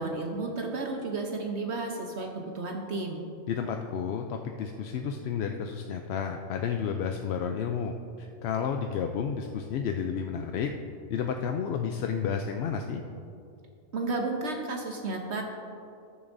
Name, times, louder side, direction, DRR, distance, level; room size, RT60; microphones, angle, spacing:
voice 1, 0.0-3.2 13.9-15.4, right 3 dB, 65° right, 2 dB, 1.1 m, -32 dB
voice 2, 3.5-10.7 11.1-13.0, left 7 dB, 65° left, 4 dB, 0.7 m, -31 dB
19.0 x 7.0 x 2.6 m, 2.7 s
omnidirectional pair, 1.3 m